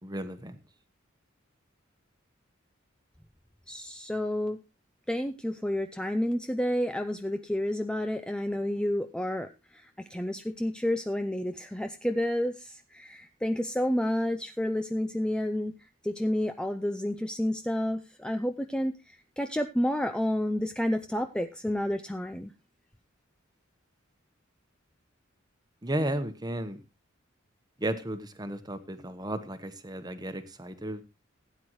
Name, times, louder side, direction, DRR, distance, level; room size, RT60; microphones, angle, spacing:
voice 1, 0.0-0.6 25.8-26.8 27.8-31.0, right 1 dB, 20° right, 9 dB, 1.2 m, -34 dB
voice 2, 3.7-4.6 5.1-15.8 16.0-22.5, left 1 dB, 5° left, 8 dB, 0.5 m, -30 dB
16.5 x 9.6 x 3.1 m, 0.27 s
head